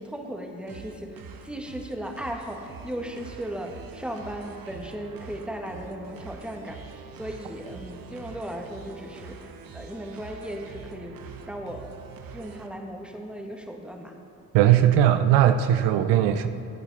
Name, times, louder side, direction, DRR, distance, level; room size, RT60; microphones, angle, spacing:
voice 1, 0.0-6.8 7.2-11.2 11.5-11.9 12.3-14.1, equal, ahead, 2 dB, 1.6 m, -36 dB
sound 1, 0.7-12.7, right 5 dB, 55° right, 1.0 m, -44 dB
voice 2, 14.5-16.5, right 11 dB, 75° right, 10 dB, 0.6 m, -19 dB
14.5 x 8.7 x 4.1 m, 2.6 s
hypercardioid pair, 55°, 41 cm